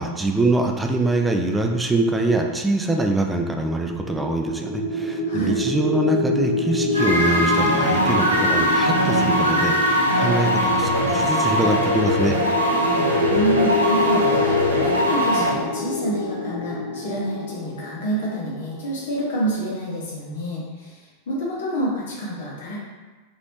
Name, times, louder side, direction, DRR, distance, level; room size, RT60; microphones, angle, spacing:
voice 1, 0.0-12.4, right 2 dB, 10° right, 3 dB, 0.3 m, -24 dB
sound 1, 3.8-18.8, left 3 dB, 15° left, 0.8 m, -26 dB
voice 2, 5.3-5.6 13.0-21.0 21.3-22.8, right 1 dB, 60° left, -5 dB, 0.7 m, -28 dB
sound 2, 6.9-15.5, equal, 80° right, 0.5 m, -21 dB
3.0 x 2.7 x 2.9 m, 1.3 s
figure-of-eight pair, 90°, 0 cm